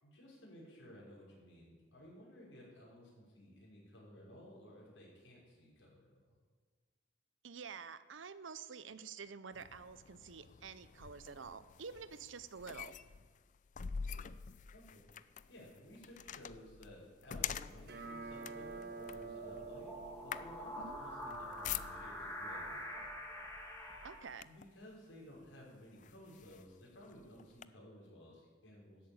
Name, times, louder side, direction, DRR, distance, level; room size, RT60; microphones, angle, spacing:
voice 1, 0.0-6.4 14.7-15.0 15.5-19.9 20.2-23.1 24.4-29.1, equal, 85° left, -4 dB, 5.9 m, -56 dB
voice 2, 7.4-13.0 20.8-21.0 24.0-24.5, right 6 dB, 85° right, 14 dB, 0.7 m, -49 dB
sound 1, 9.5-22.3 23.2-23.4 23.8-24.8 25.4-25.5 26.0-27.6, left 8 dB, 40° left, 0.4 m, -46 dB
sound 2, 17.7-24.2, equal, 10° left, 2.4 m, -47 dB
sound 3, 17.8-22.8, right 3 dB, 55° right, 1.2 m, -50 dB
13.0 x 8.8 x 8.9 m, 1.5 s
head